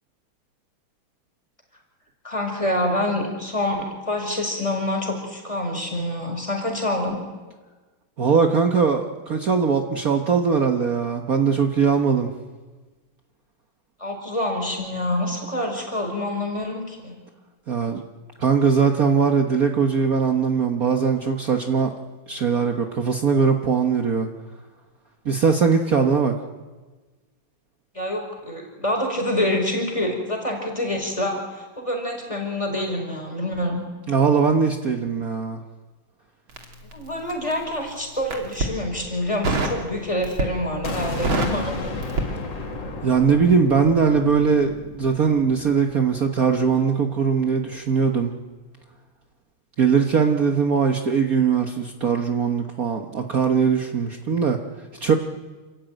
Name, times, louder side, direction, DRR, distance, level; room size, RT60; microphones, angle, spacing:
voice 1, 2.2-7.2 14.0-17.2 27.9-33.8 36.8-41.9, left 1 dB, 15° left, 2 dB, 5.0 m, -26 dB
voice 2, 8.2-12.3 17.7-18.0 18.4-21.9 22.3-24.3 25.2-26.3 34.1-35.6 43.0-48.3 49.8-54.6 55.0-55.1, right 6 dB, 50° right, 4 dB, 1.6 m, -20 dB
Crackle, 36.5-37.6 38.2-38.8 39.4-39.8 40.2-40.7 41.0-42.9 43.2-43.4, right 2 dB, 75° right, 3.6 m, -26 dB
sound 1, 40.8-46.6, left 3 dB, 60° left, 3.1 m, -34 dB
28.0 x 15.0 x 9.2 m, 1.3 s
omnidirectional pair, 2.2 m